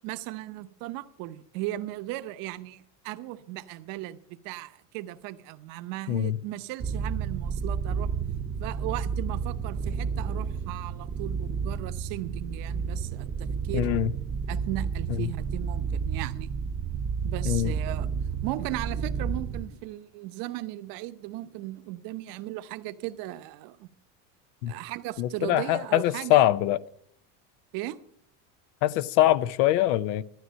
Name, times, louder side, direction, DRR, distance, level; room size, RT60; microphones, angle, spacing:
voice 1, 0.0-8.1 8.6-13.9 14.5-16.5 17.2-18.1 18.4-23.9 24.7-26.4 27.7-28.0, right 16 dB, 60° right, 0.9 m, -37 dB
sound 1, 6.8-19.7, right 6 dB, 25° right, 0.9 m, -31 dB
voice 2, 13.7-14.1 15.2-15.3 17.5-17.7 24.6-24.8 25.2-26.8 28.8-30.2, left 13 dB, 75° left, 0.7 m, -23 dB
12.5 x 9.8 x 6.3 m
supercardioid pair, 135°, 39 cm